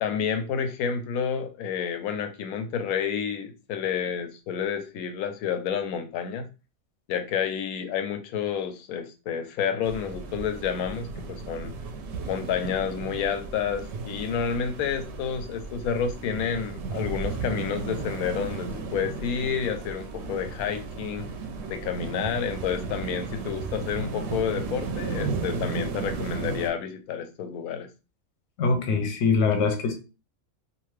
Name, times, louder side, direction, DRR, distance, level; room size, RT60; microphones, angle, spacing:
voice 1, 0.0-6.5 7.1-11.7 12.3-21.3 21.7-27.9, left 7 dB, 90° left, 1.0 m, -30 dB
sound 1, 9.8-26.7, right 4 dB, 65° right, 0.7 m, -34 dB
voice 2, 28.6-29.9, left 4 dB, 65° left, 0.8 m, -23 dB
2.5 x 2.4 x 3.1 m
omnidirectional pair, 1.5 m